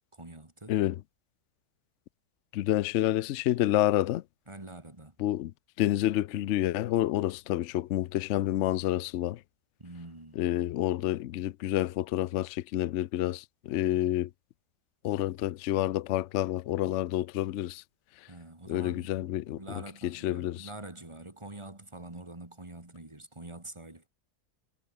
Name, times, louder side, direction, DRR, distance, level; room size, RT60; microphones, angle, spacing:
voice 1, 0.1-0.7 4.5-5.1 9.8-10.4 18.3-19.1 19.6-24.1, right 2 dB, 20° right, 2.7 m, -45 dB
voice 2, 2.5-4.2 5.2-5.5 5.8-9.4 10.4-14.3 15.0-17.8 18.7-19.6 20.0-20.7, left 14 dB, 65° left, 0.7 m, -28 dB
omnidirectional pair, 1.7 m